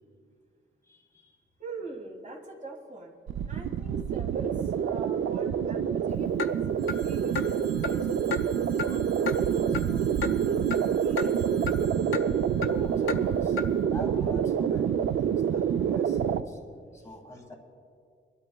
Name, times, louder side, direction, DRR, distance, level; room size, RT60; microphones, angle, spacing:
voice 1, 0.8-1.4 12.7-13.6 13.9-16.6 16.9-17.5, equal, 15° left, 0 dB, 1.4 m, -44 dB
voice 2, 1.6-3.2 3.5-6.6 7.0-7.6 7.9-11.5, right 3 dB, 40° right, 0 dB, 1.9 m, -44 dB
sound 1, 3.3-16.4, right 8 dB, 80° right, 0.4 m, -27 dB
Clock, 6.4-6.5 6.9-7.0 7.4-7.5 7.8-8.0 8.3-8.4 8.8-8.9 9.3-9.4 9.7-9.9 10.2-10.3 10.7-10.8 11.2-11.3 11.7-11.8 12.1-12.3 12.6-12.7 13.1-13.2 13.6-13.7, left 5 dB, 80° left, 0.6 m, -31 dB
Telephone, 6.8-13.6, right 6 dB, 55° right, 1.7 m, -51 dB
24.0 x 12.5 x 2.3 m, 2.3 s
wide cardioid pair, 175°, 20 cm